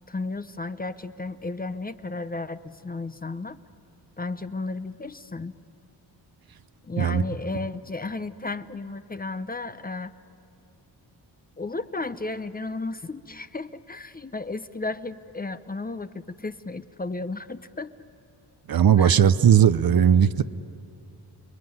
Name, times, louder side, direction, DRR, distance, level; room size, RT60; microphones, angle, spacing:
voice 1, 0.1-3.6 4.2-5.5 6.8-10.1 11.6-18.0 19.0-19.2, left 3 dB, 20° left, 12 dB, 0.8 m, -33 dB
voice 2, 18.7-20.4, right 8 dB, 55° right, 13 dB, 0.8 m, -18 dB
29.0 x 21.5 x 9.5 m, 2.5 s
cardioid pair, 75°, 42 cm